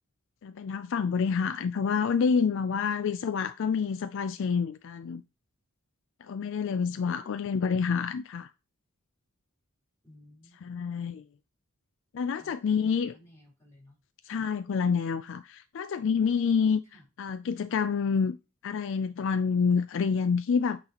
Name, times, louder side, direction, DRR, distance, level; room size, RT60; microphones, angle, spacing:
voice 1, 0.4-5.2 6.2-8.5 10.6-11.2 12.1-13.1 14.3-16.8 17.2-18.4 18.6-20.8, left 6 dB, 60° left, 0.4 m, -28 dB
voice 2, 1.3-2.0 6.8-7.7 10.0-10.6 10.9-11.1 12.4-13.9 14.2-14.5 16.9-17.1, equal, 15° left, 4.1 m, -56 dB
8.8 x 4.0 x 2.9 m
head